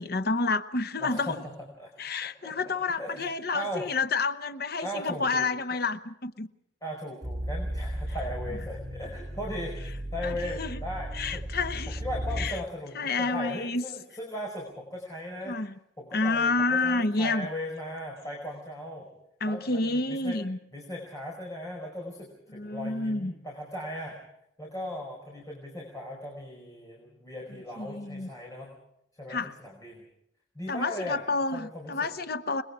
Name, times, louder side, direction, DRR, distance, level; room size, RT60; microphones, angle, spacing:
voice 1, 0.0-1.4 2.0-6.5 10.2-10.8 11.1-12.0 12.4-12.6 12.9-13.8 15.5-15.8 16.1-17.5 19.4-20.6 22.5-23.3 27.8-28.3 29.3-29.5 30.7-32.6, left 3 dB, 50° left, 10 dB, 0.9 m, -29 dB
voice 2, 1.0-1.9 2.2-2.5 3.0-3.9 4.8-5.8 6.8-11.6 11.9-15.6 16.0-19.1 19.4-20.4 20.7-24.2 24.6-28.7 29.2-30.0 30.5-31.2 31.5-32.1, left 1 dB, 20° left, -2 dB, 5.0 m, -38 dB
sound 1, 7.2-12.5, equal, 30° right, 3.5 m, -35 dB
29.0 x 21.5 x 4.9 m, 0.75 s
head